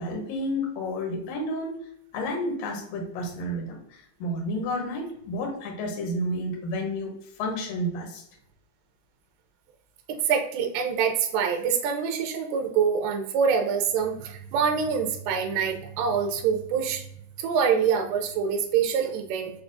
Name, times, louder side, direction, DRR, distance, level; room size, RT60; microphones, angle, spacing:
voice 1, 0.0-1.8 2.1-3.8 4.2-7.1 7.4-8.2, left 1 dB, 75° left, 0 dB, 1.6 m, -30 dB
voice 2, 10.1-17.1 17.4-19.5, right 6 dB, 80° right, 3 dB, 2.0 m, -25 dB
5.9 x 2.3 x 2.5 m, 0.71 s
omnidirectional pair, 4.2 m